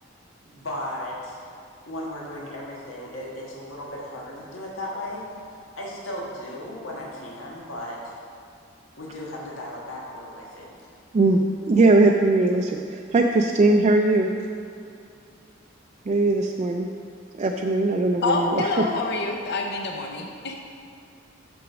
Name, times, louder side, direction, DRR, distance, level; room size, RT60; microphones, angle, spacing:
voice 1, 0.5-1.4 1.9-8.2 9.0-10.9, left 1 dB, 85° left, -4 dB, 1.5 m, -36 dB
voice 2, 11.1-14.3 16.1-16.9 17.3-18.9, right 2 dB, 35° right, 2 dB, 0.3 m, -20 dB
voice 3, 18.2-20.5, left 3 dB, 55° left, 2 dB, 0.6 m, -27 dB
6.1 x 6.0 x 6.0 m, 2.5 s
head